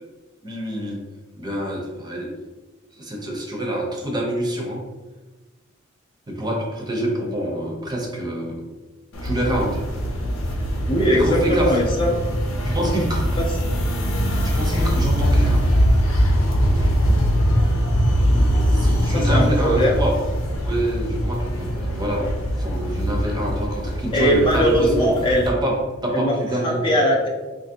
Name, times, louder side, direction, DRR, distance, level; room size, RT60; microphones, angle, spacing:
voice 1, 0.4-1.0 1.4-2.3 3.0-4.9 6.3-8.6 9.2-9.8 11.1-11.8 12.6-13.4 14.4-15.7 18.7-20.2 20.6-25.2 25.5-26.9, right 1 dB, 20° right, -1 dB, 0.6 m, -26 dB
sound 1, 9.1-25.5, equal, 90° left, 0.7 m, -22 dB
voice 2, 10.9-12.1 13.4-13.5 19.0-20.0 24.1-25.5 26.1-26.4 26.6-27.3, equal, 25° left, -2 dB, 0.4 m, -20 dB
3.9 x 2.5 x 2.7 m, 1.2 s
head